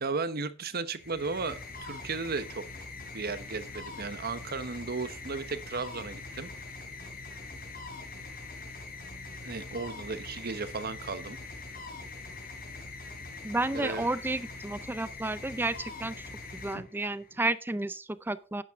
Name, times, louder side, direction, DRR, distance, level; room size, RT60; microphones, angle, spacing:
voice 1, 0.0-2.7 3.1-6.5 9.4-11.4 13.7-14.1, right 4 dB, 50° right, 0.9 m, -35 dB
sound 1, 0.9-17.4, left 3 dB, 50° left, 3.2 m, -43 dB
voice 2, 13.4-18.6, right 2 dB, 10° right, 0.5 m, -32 dB
11.5 x 9.2 x 3.6 m
head